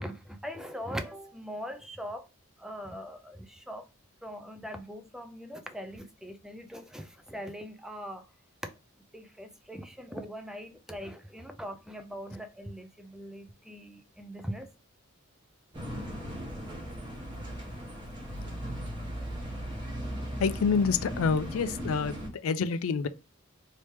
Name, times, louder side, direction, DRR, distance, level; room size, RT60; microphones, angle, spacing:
voice 1, 0.0-2.3 2.6-3.9 4.2-8.3 9.1-14.7, equal, 5° right, 0.3 m, -41 dB
sound 1, 15.7-22.3, equal, 20° right, 1.0 m, -37 dB
voice 2, 20.4-23.1, left 5 dB, 85° left, 0.4 m, -27 dB
3.1 x 2.8 x 3.3 m
head